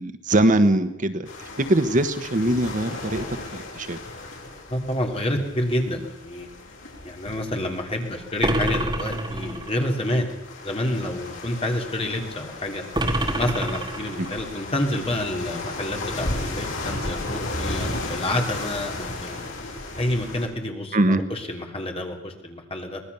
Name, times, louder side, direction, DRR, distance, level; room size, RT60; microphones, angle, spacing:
voice 1, 0.0-4.0 14.2-14.3 20.9-21.2, right 1 dB, 40° right, 10 dB, 1.2 m, -22 dB
sound 1, 1.2-20.5, left 2 dB, 70° left, 5.8 m, -35 dB
voice 2, 4.7-6.5 7.0-10.3 10.6-12.8 13.3-19.4 20.0-23.0, left 1 dB, 30° left, 3 dB, 3.2 m, -28 dB
sound 2, 8.4-9.9 12.9-14.5, right 1 dB, 20° right, 2.3 m, -26 dB
24.5 x 18.5 x 6.9 m, 0.81 s
head